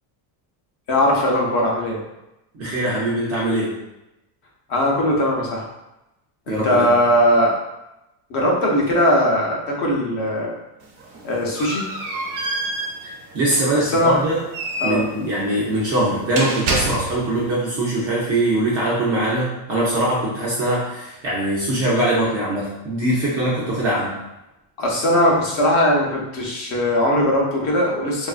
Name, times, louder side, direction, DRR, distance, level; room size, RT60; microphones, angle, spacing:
voice 1, 0.9-2.0 4.7-5.7 6.5-7.5 8.3-10.5 11.2-11.9 13.8-14.2 14.8-15.1 24.8-28.3, equal, 45° left, -2 dB, 0.7 m, -19 dB
voice 2, 2.5-3.8 6.5-6.9 13.0-14.4 14.8-24.2, right 1 dB, 35° right, -6 dB, 0.4 m, -22 dB
sound 1, 10.8-17.4, right 2 dB, 85° right, 0.9 m, -28 dB
3.0 x 2.5 x 2.3 m, 0.92 s
cardioid pair, 170°, 49 cm